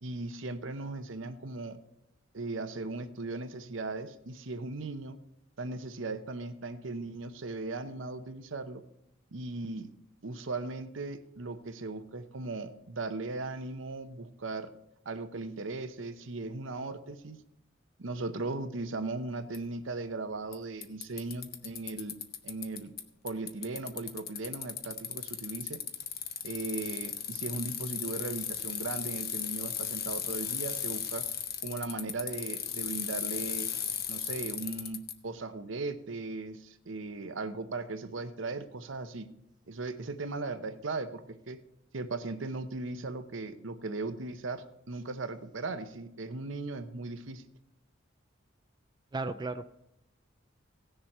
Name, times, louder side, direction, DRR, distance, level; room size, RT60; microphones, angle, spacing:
voice 1, 0.0-1.8 2.3-5.2 5.6-8.8 9.3-9.9 10.2-14.7 15.0-17.4 18.0-22.2 22.4-22.9 23.2-25.8 26.4-31.3 31.6-33.7 34.1-39.3 39.7-41.6 41.9-47.4, right 3 dB, 70° right, 10 dB, 0.8 m, -38 dB
Bicycle, 19.5-19.6 20.5-20.6 20.8-23.0 23.3-35.1, left 9 dB, 50° left, 1.0 m, -36 dB
voice 2, 49.1-49.7, right 3 dB, 20° right, 9 dB, 0.3 m, -34 dB
17.5 x 6.9 x 4.3 m, 0.83 s
head